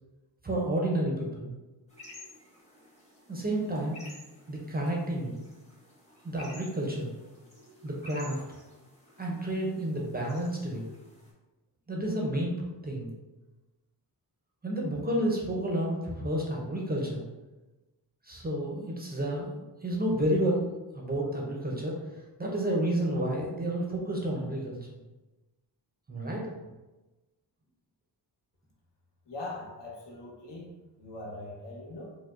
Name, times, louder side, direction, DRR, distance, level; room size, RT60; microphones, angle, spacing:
voice 1, 0.4-1.5 3.3-4.0 4.5-5.4 6.2-7.1 7.8-8.4 9.2-10.9 11.9-12.6 12.8-13.1 14.6-17.2 18.2-22.0 22.4-25.0 26.1-26.5, right 1 dB, 20° right, -2 dB, 0.5 m, -30 dB
sound 1, 1.9-11.3, left 1 dB, 15° left, 0.7 m, -53 dB
voice 2, 29.3-32.2, left 2 dB, 75° left, -3 dB, 1.0 m, -41 dB
4.5 x 2.1 x 2.4 m, 1.1 s
wide cardioid pair, 135°, 43 cm